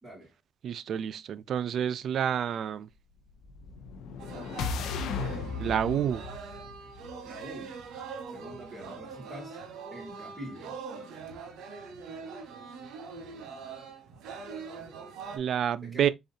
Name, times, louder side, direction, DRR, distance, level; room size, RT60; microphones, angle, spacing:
voice 1, 0.0-0.3 7.2-7.8 8.3-9.6 9.9-10.8 15.8-16.1, equal, 5° right, 2.3 m, -44 dB
voice 2, 0.6-2.9 5.6-6.3 15.3-16.1, right 9 dB, 65° right, 0.3 m, -29 dB
sound 1, 3.4-7.6, left 5 dB, 85° left, 0.5 m, -36 dB
sound 2, 4.2-15.4, right 5 dB, 85° right, 1.0 m, -43 dB
3.9 x 3.5 x 2.7 m
cardioid pair, 90°, 0 cm